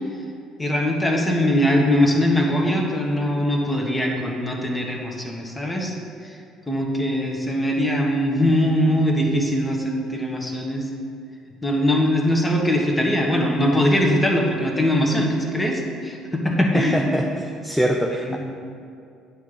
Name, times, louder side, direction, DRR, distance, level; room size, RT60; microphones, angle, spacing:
voice 1, 0.6-5.9 6.2-6.4 6.7-10.9 11.6-17.0 18.2-18.4, equal, 15° left, 0 dB, 1.3 m, -21 dB
voice 2, 16.6-18.4, equal, ahead, 1 dB, 0.6 m, -23 dB
9.1 x 3.7 x 6.6 m, 2.5 s
figure-of-eight pair, 55°, 0 cm